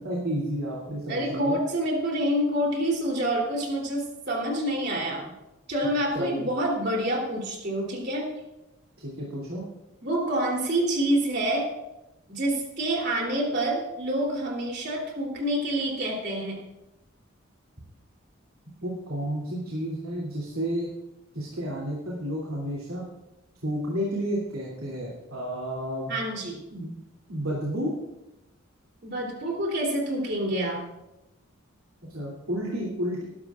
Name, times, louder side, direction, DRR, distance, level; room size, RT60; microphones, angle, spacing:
voice 1, 0.0-1.6 6.1-6.5 9.0-9.6 18.8-20.9 21.3-23.0 23.6-26.1 26.7-26.9 27.3-27.9 32.1-33.2, equal, 90° right, -5 dB, 3.0 m, -31 dB
voice 2, 1.1-5.3 5.7-8.3 10.0-11.7 12.3-16.6 26.1-26.6 29.0-30.8, right 1 dB, 50° right, -1 dB, 3.3 m, -27 dB
19.5 x 12.0 x 2.5 m, 0.95 s
head